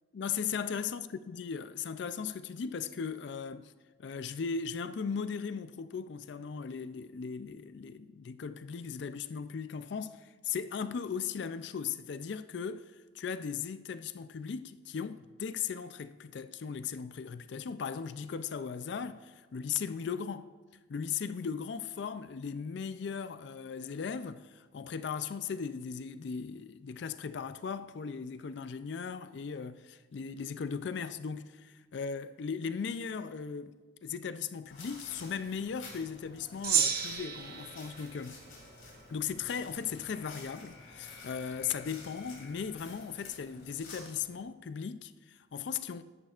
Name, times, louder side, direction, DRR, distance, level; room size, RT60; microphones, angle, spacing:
voice 1, 0.1-3.7 4.0-20.5 20.9-33.7 34.0-38.4 39.1-46.0, left 6 dB, 60° left, 0.4 m, -37 dB
sound 1, 34.7-44.3, left 3 dB, 90° left, 2.9 m, -51 dB
Gong, 36.6-39.3, right 7 dB, 50° right, 0.9 m, -33 dB
13.0 x 11.0 x 2.4 m
head